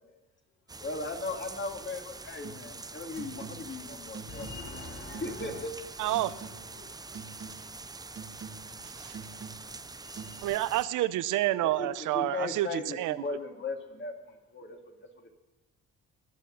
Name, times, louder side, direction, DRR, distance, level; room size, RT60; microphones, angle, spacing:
voice 1, 0.0-1.0 3.3-3.4 3.7-4.4 4.6-5.1 5.4-5.5 6.0-8.4 8.9-10.4, left 4 dB, 90° left, -5 dB, 4.9 m, -60 dB
sound 1, 0.7-10.8, right 3 dB, 15° right, 0.5 m, -45 dB
voice 2, 0.8-5.7 10.0-10.5 11.8-15.3, left 3 dB, 40° left, 3 dB, 2.4 m, -38 dB
sound 2, 2.4-2.8 3.1-3.8 4.1-4.8 5.1-5.8 6.1-6.8 7.1-7.8 8.2-8.8 9.1-9.8 10.2-10.4, right 6 dB, 50° right, 1.7 m, -46 dB
voice 3, 6.0-6.3 8.8-9.1 10.4-13.2, right 15 dB, 85° right, 16 dB, 0.6 m, -29 dB
20.5 x 6.9 x 6.4 m, 1.1 s
cardioid pair, 90°, 30 cm